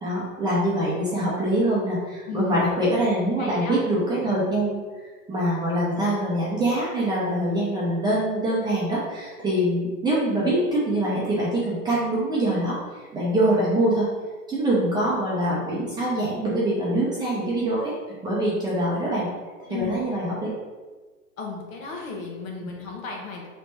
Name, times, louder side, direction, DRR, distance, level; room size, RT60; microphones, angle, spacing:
voice 1, 0.0-14.1 14.5-17.9 18.2-19.3 19.7-20.5 22.6-22.7, right 1 dB, 10° right, -8 dB, 0.8 m, -24 dB
voice 2, 2.3-2.7 3.3-3.8 19.7-20.0 21.4-23.5, left 5 dB, 60° left, 0 dB, 1.1 m, -34 dB
3.9 x 3.3 x 3.4 m, 1.3 s
hypercardioid pair, 130°, 46 cm